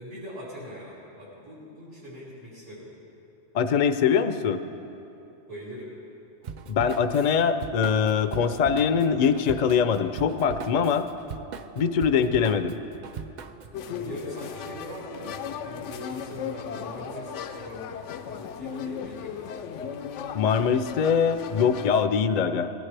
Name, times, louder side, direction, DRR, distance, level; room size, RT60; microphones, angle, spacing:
voice 1, 0.0-2.9 5.5-5.9 13.8-17.8 18.2-19.4, equal, 85° right, -9 dB, 3.6 m, -41 dB
voice 2, 3.5-4.6 6.7-11.1 11.8-12.8 20.3-22.7, left 6 dB, 50° left, 10 dB, 0.5 m, -23 dB
Drum kit / Drum, 6.4-13.8, right 6 dB, 60° right, 0.5 m, -40 dB
sound 1, 13.7-22.0, left 7 dB, 85° left, 0.9 m, -37 dB
18.5 x 16.0 x 3.3 m, 2.9 s
omnidirectional pair, 1.2 m